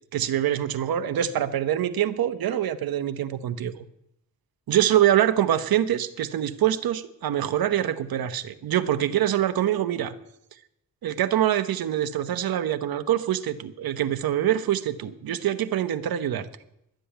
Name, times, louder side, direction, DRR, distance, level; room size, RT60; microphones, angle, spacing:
voice 1, 0.1-3.8 4.7-10.1 11.0-16.5, right 11 dB, 85° right, 12 dB, 1.0 m, -25 dB
11.5 x 7.7 x 9.9 m, 0.80 s
cardioid pair, 110°, 35 cm